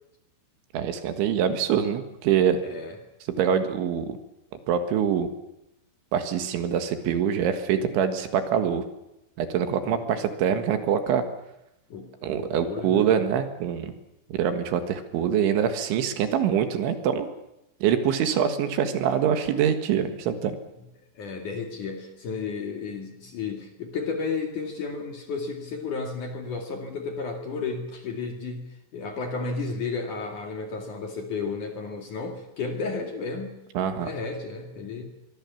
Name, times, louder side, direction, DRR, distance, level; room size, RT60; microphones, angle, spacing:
voice 1, 0.7-2.6 3.4-4.2 4.7-5.3 6.1-8.8 9.4-11.2 12.2-13.9 14.3-17.3 17.8-20.6 33.8-34.1, right 8 dB, 70° right, 7 dB, 3.9 m, -24 dB
voice 2, 2.6-3.0 9.9-10.0 11.9-13.1 21.1-33.6 34.0-35.0, left 4 dB, 50° left, 3 dB, 3.0 m, -33 dB
24.0 x 23.5 x 7.2 m, 0.87 s
omnidirectional pair, 5.8 m